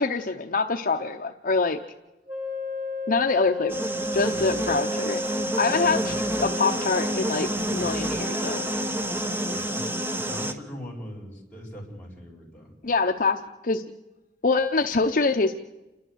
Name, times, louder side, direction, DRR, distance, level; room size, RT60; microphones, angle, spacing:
voice 1, 0.0-1.8 3.1-3.9 4.1-5.2 5.6-8.7 12.8-13.8 14.4-15.6, left 3 dB, 50° left, 4 dB, 0.8 m, -25 dB
Wind instrument woodwind instrument, 2.3-6.9, left 1 dB, 60° right, 5.5 m, -33 dB
sound 1, 3.7-10.5, right 1 dB, 15° right, 1.0 m, -29 dB
voice 2, 9.5-12.7, equal, 10° left, -3 dB, 4.7 m, -41 dB
29.5 x 12.0 x 8.0 m, 1.0 s
head